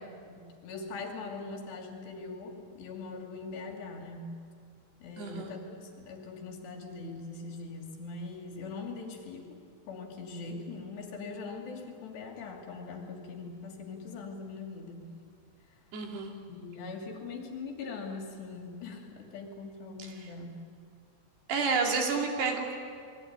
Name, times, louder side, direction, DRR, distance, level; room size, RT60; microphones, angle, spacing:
voice 1, 0.0-4.4 5.0-9.6 9.9-15.1 16.5-20.6, left 3 dB, 65° left, 2 dB, 4.8 m, -41 dB
voice 2, 5.2-5.5 15.9-16.3 21.5-22.7, right 4 dB, 60° right, 2 dB, 4.6 m, -30 dB
28.5 x 22.0 x 9.6 m, 2.2 s
omnidirectional pair, 5.5 m